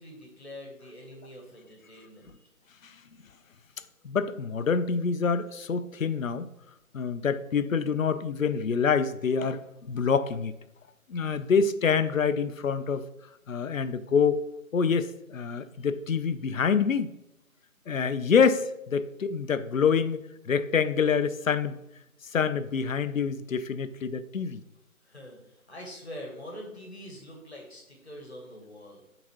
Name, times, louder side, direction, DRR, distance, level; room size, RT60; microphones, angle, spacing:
voice 1, 0.0-2.5 25.0-29.0, equal, 45° left, 1 dB, 1.3 m, -44 dB
voice 2, 4.0-6.5 6.9-10.5 11.1-13.0 13.5-14.4 14.7-17.1 17.9-21.8 22.3-24.6, left 6 dB, 65° left, 12 dB, 0.6 m, -26 dB
11.5 x 3.9 x 3.0 m, 0.89 s
figure-of-eight pair, 160°, 43 cm